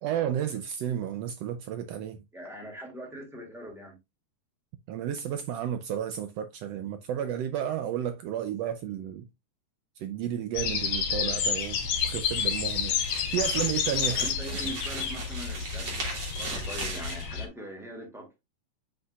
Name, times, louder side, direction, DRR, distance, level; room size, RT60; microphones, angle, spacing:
voice 1, 0.0-2.2 4.9-9.3 10.0-11.8 12.0-13.0 13.3-14.3, right 10 dB, 90° right, 1.4 m, -32 dB
voice 2, 2.3-4.0 14.1-16.1 16.4-18.5, right 1 dB, ahead, 1.9 m, -42 dB
sound 1, 10.6-17.5, left 7 dB, 80° left, 2.9 m, -30 dB
sound 2, 11.3-17.3, right 3 dB, 55° right, 4.0 m, -39 dB
7.0 x 6.6 x 2.4 m
omnidirectional pair, 3.6 m